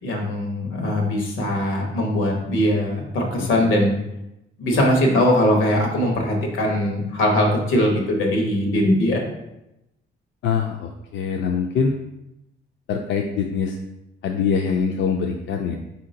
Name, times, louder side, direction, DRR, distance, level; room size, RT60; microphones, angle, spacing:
voice 1, 0.0-4.0 4.6-9.2, left 1 dB, 90° left, 1 dB, 1.2 m, -21 dB
voice 2, 3.3-3.7 10.4-12.0 12.9-13.8 14.2-15.8, left 6 dB, 70° left, 3 dB, 0.4 m, -24 dB
4.2 x 2.8 x 3.8 m, 0.89 s
cardioid pair, 90°, 20 cm